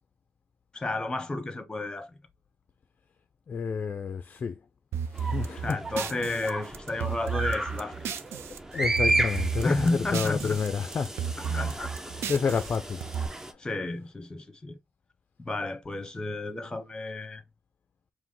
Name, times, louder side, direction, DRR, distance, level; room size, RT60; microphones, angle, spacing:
voice 1, 0.7-2.2 5.6-8.0 9.6-10.6 11.5-11.9 13.6-14.8 15.4-17.4, left 2 dB, 20° left, 0.8 m, -31 dB
voice 2, 3.5-4.6 5.1-5.8 8.7-11.1 11.4-11.8 12.3-13.0 13.5-13.6, left 5 dB, 35° left, 0.4 m, -30 dB
sound 1, 4.9-8.6 8.8-10.7 10.9-13.3, right 7 dB, 80° right, 0.4 m, -33 dB
sound 2, 5.1-13.5, right 2 dB, 10° right, 0.5 m, -33 dB
4.7 x 2.1 x 3.7 m
cardioid pair, 125°, 4 cm